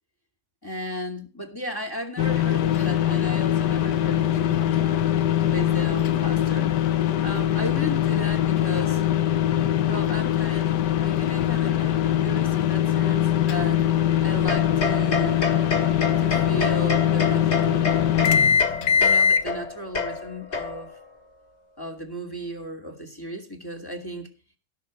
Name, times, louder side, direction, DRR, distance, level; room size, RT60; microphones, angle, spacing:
voice 1, 0.6-5.1 5.5-6.7 7.2-9.0 9.9-13.9 14.2-15.5 16.2-18.0 18.8-20.9 21.8-24.3, equal, 10° left, 2.5 m, -35 dB
sound 1, 2.2-19.4, left 10 dB, 80° left, 1.5 m, -22 dB
sound 2, 14.5-21.0, left 4 dB, 40° left, 1.9 m, -29 dB
16.5 x 6.5 x 7.4 m
omnidirectional pair, 1.8 m